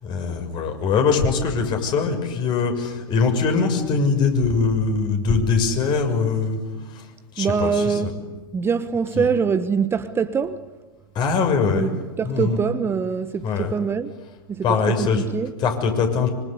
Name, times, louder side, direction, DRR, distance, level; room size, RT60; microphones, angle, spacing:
voice 1, 0.0-6.6 6.9-7.1 7.3-8.1 9.1-9.3 11.1-11.9 12.2-12.6 13.4-13.7 14.6-15.2 15.6-16.3, left 5 dB, 35° left, 6.6 m, -22 dB
voice 2, 7.4-8.2 8.5-10.6 11.7-11.9 12.2-14.1 14.5-14.6 15.0-15.5, right 6 dB, 20° right, 1.3 m, -23 dB
25.5 x 25.5 x 8.2 m
hypercardioid pair, 95°, 12 cm